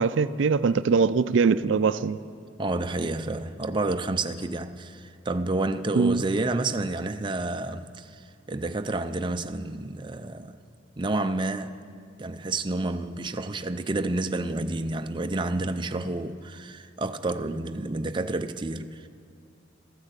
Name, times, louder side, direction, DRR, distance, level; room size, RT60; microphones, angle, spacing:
voice 1, 0.0-2.2 6.0-6.2, right 5 dB, 90° right, 0.4 m, -22 dB
voice 2, 2.6-8.2 8.5-10.5 11.0-11.8 12.2-19.1, right 2 dB, 25° right, 0.5 m, -29 dB
13.5 x 13.0 x 8.1 m
head